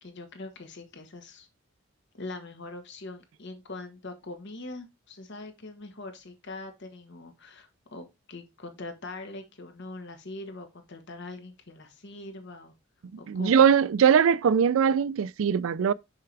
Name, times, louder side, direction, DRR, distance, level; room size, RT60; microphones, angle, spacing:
voice 1, 0.0-1.5 2.1-12.7 13.2-13.6, left 2 dB, 60° left, 1.4 m, -42 dB
voice 2, 13.3-15.9, right 7 dB, 75° right, 0.4 m, -21 dB
6.5 x 5.9 x 3.3 m
head